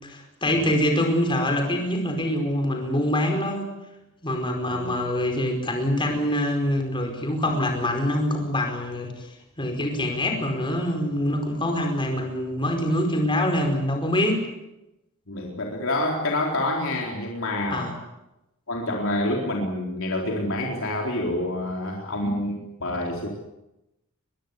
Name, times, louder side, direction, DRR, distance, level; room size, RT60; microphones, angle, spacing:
voice 1, 0.0-3.7 4.2-9.3 9.6-14.4 17.7-17.9, left 1 dB, 25° left, 3 dB, 4.9 m, -25 dB
voice 2, 15.3-17.9 18.7-23.3, left 1 dB, 65° left, 0 dB, 4.1 m, -27 dB
23.5 x 21.5 x 8.5 m, 0.92 s
head